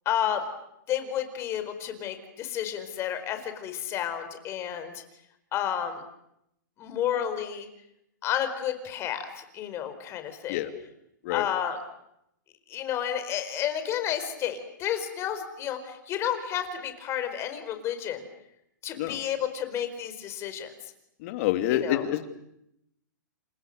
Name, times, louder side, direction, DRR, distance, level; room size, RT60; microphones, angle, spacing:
voice 1, 0.0-0.4 0.9-5.0 5.5-6.0 6.8-7.7 8.2-10.6 11.3-11.8 12.7-18.2 18.8-20.7 21.7-22.0, left 10 dB, 25° left, 8 dB, 4.6 m, -31 dB
voice 2, 21.2-22.3, left 13 dB, 45° left, 8 dB, 2.9 m, -27 dB
29.5 x 29.0 x 6.7 m, 0.79 s
hypercardioid pair, 145°, 10 cm